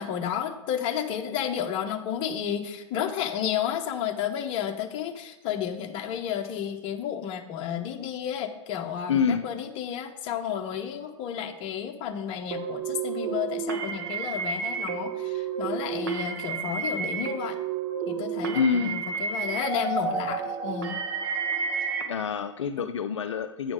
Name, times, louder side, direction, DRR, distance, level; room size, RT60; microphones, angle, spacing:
voice 1, 0.0-17.6 18.1-21.0 22.8-22.9, left 9 dB, 35° left, 5 dB, 0.9 m, -32 dB
voice 2, 9.1-9.5 18.5-19.0 21.8-23.7, left 6 dB, 70° left, 9 dB, 0.4 m, -27 dB
sound 1, 12.5-22.0, right 6 dB, 50° right, 1.2 m, -31 dB
9.2 x 5.1 x 5.0 m, 1.1 s
figure-of-eight pair, 105°, 16 cm